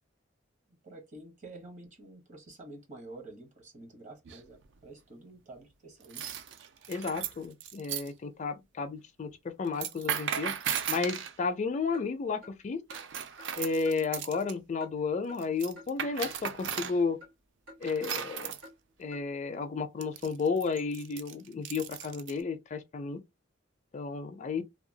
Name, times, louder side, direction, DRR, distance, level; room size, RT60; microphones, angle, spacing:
voice 1, 0.8-6.3, right 2 dB, 40° right, 0.9 m, -49 dB
sound 1, 4.2-4.7 6.0-8.1 9.7-11.3 12.9-14.5 15.4-17.0 17.8-18.6 20.0-22.4, right 8 dB, 65° right, 0.4 m, -36 dB
voice 2, 6.9-10.5 10.9-12.8 13.6-17.2 17.8-18.5 19.0-23.2 23.9-24.6, left 4 dB, 40° left, 0.4 m, -32 dB
Clock, 11.9-12.1 12.4-12.5 12.9-13.0 13.4-13.5 13.8-14.0 14.3-14.4 14.8-14.9 15.3-15.4 15.8-15.9 16.2-16.4 16.7-16.8 17.2-17.3 17.7-17.8 18.2-18.3 18.6-18.7 19.1-19.2, left 1 dB, 85° right, 1.6 m, -50 dB
2.8 x 2.2 x 2.6 m
head